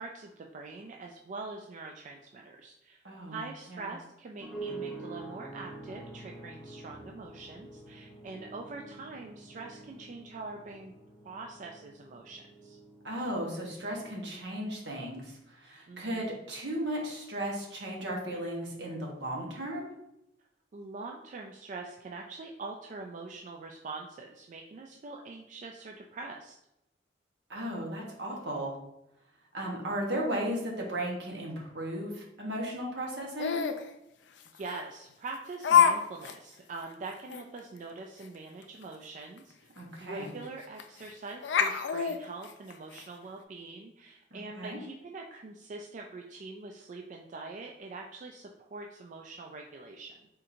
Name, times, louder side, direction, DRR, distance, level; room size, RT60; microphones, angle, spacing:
voice 1, 0.0-3.0 3.3-10.9 11.2-12.8 15.9-16.4 20.7-26.6 34.5-39.5 40.0-50.3, right 3 dB, 45° right, 1 dB, 0.3 m, -43 dB
voice 2, 3.0-3.4 3.7-3.9 13.0-19.9 27.5-28.8 29.5-33.6 39.8-40.3 44.3-44.8, right 1 dB, 75° right, -1 dB, 1.2 m, -35 dB
sound 1, 4.4-14.4, right 2 dB, 5° right, 0.7 m, -46 dB
Laughter, 33.4-33.8 34.7-34.8 35.6-36.0 36.2-36.3 36.8-36.9 37.3-37.4 39.4-39.5 39.8-39.9 40.8-41.1 41.4-43.0, left 7 dB, 75° left, 0.4 m, -25 dB
4.3 x 3.7 x 2.6 m, 0.85 s
head